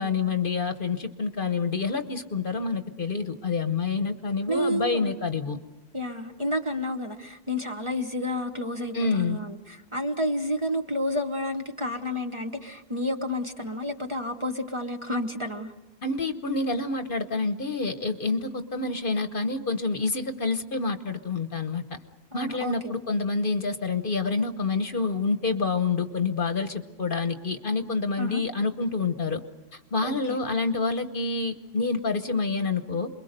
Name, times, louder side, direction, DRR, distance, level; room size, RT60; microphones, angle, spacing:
voice 1, 0.0-5.6 8.9-9.4 16.0-21.8 22.3-29.4 29.7-33.1, left 4 dB, 45° left, 9 dB, 1.2 m, -27 dB
voice 2, 4.5-5.1 5.9-15.7 22.3-23.0 28.2-28.4 30.0-30.4, left 1 dB, 25° right, 4 dB, 1.2 m, -30 dB
28.5 x 22.5 x 6.7 m, 1.1 s
omnidirectional pair, 1.3 m